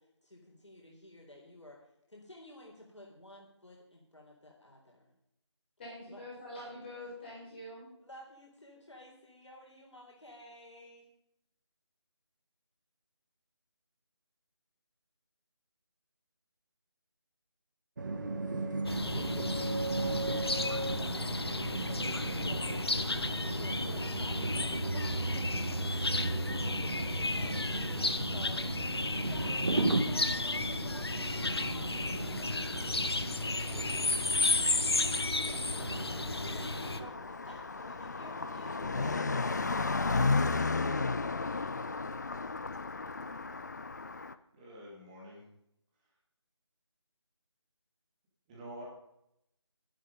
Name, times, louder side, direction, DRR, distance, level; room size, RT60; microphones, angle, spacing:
voice 1, 0.0-5.1 6.1-6.2 8.0-11.1 19.0-29.0 29.3-41.1 41.4-42.6, left 1 dB, 75° left, -2 dB, 3.9 m, -52 dB
voice 2, 5.8-7.9, left 1 dB, 20° left, -6 dB, 4.5 m, -45 dB
sound 1, 18.0-37.1, right 2 dB, 40° right, 1.4 m, -36 dB
sound 2, 18.9-37.0, left 3 dB, 60° left, 1.0 m, -34 dB
Car passing by, 35.8-44.3, left 3 dB, 40° left, 0.6 m, -33 dB
voice 3, 44.5-45.4 48.5-48.8, equal, 15° right, -4 dB, 2.8 m, -47 dB
12.0 x 11.5 x 5.5 m, 0.78 s
figure-of-eight pair, 160°, 15 cm